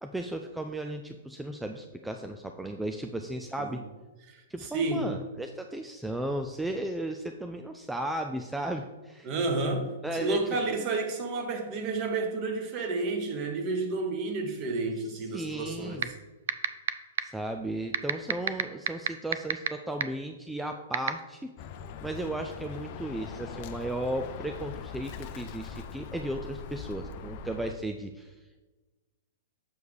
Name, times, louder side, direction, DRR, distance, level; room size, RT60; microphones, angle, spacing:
voice 1, 0.0-3.8 4.5-9.3 10.0-10.4 10.7-10.9 15.3-16.1 17.2-21.5 22.0-28.3, right 1 dB, 5° right, 0.4 m, -35 dB
voice 2, 4.3-5.1 9.2-16.0, right 3 dB, 40° right, 1.3 m, -31 dB
sound 1, 16.0-16.1 16.5-16.9 17.2-17.3 17.9-19.7 20.0-20.1 20.9-21.1, right 9 dB, 65° right, 0.4 m, -24 dB
Bird, 21.6-27.7, left 6 dB, 50° left, 0.6 m, -41 dB
7.0 x 4.6 x 5.1 m
hypercardioid pair, 115°, 0 cm